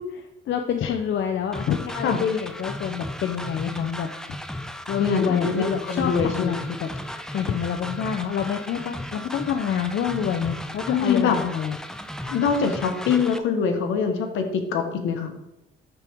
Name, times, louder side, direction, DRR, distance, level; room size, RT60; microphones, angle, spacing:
voice 1, 0.5-4.1 4.9-11.8, left 8 dB, 65° left, 5 dB, 0.7 m, -27 dB
sound 1, 1.5-13.4, left 1 dB, 5° left, 0.7 m, -35 dB
voice 2, 5.0-6.5 10.9-11.4 12.2-15.3, left 6 dB, 85° left, 5 dB, 1.3 m, -24 dB
12.0 x 4.6 x 3.6 m, 0.93 s
cardioid pair, 90°, 20 cm